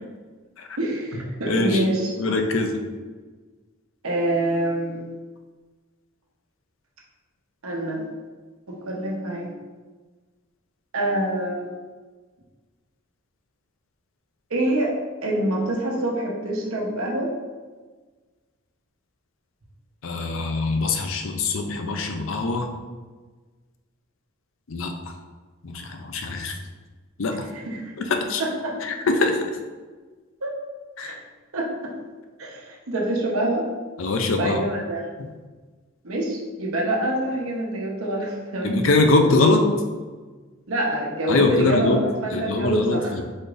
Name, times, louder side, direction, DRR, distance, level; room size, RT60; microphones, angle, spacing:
voice 1, 0.8-2.1 4.0-5.0 7.6-8.0 8.7-9.5 10.9-11.7 14.5-14.9 15.2-17.3 27.7-27.9 28.4-28.8 30.4-30.5 31.0-31.2 31.5-31.9 32.4-33.7 33.9-35.1 36.0-38.8 40.7-43.1, right 1 dB, 90° right, -2 dB, 1.0 m, -26 dB
voice 2, 1.4-1.8 2.2-2.8 20.0-22.8 24.7-25.1 25.6-26.6 27.2-27.5 28.0-28.4 28.8-29.4 31.0-31.1 34.0-34.6 35.2-35.3 38.6-39.7 41.3-42.0 42.3-43.2, left 3 dB, 70° left, 4 dB, 0.6 m, -23 dB
4.9 x 4.2 x 2.6 m, 1.4 s
head